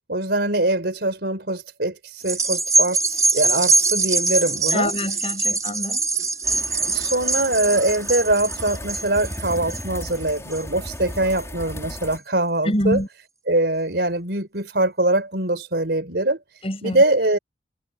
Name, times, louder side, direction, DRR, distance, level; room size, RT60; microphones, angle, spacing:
voice 1, 0.1-4.9 6.8-13.0 13.5-16.4 16.8-17.4, right 2 dB, 65° right, 4.3 m, -23 dB
sound 1, 2.2-10.9 11.4-11.5, right 3 dB, 20° right, 3.2 m, -23 dB
voice 2, 4.7-6.0 12.6-13.1 16.6-17.0, left 1 dB, 35° left, 6.5 m, -25 dB
sound 2, 6.4-12.2, left 1 dB, 15° left, 4.8 m, -35 dB
head